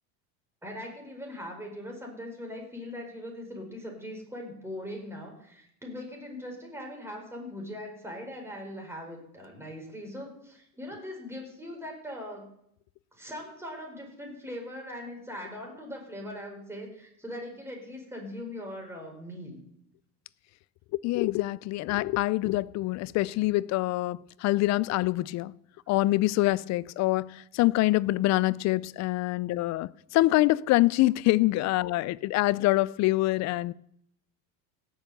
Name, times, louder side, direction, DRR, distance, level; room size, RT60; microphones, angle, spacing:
voice 1, 0.6-12.5 13.1-19.6, left 1 dB, 5° right, 5.3 m, -40 dB
voice 2, 21.0-25.5 25.9-33.7, left 18 dB, 45° left, 0.4 m, -25 dB
17.0 x 7.2 x 8.0 m
supercardioid pair, 110°, 42 cm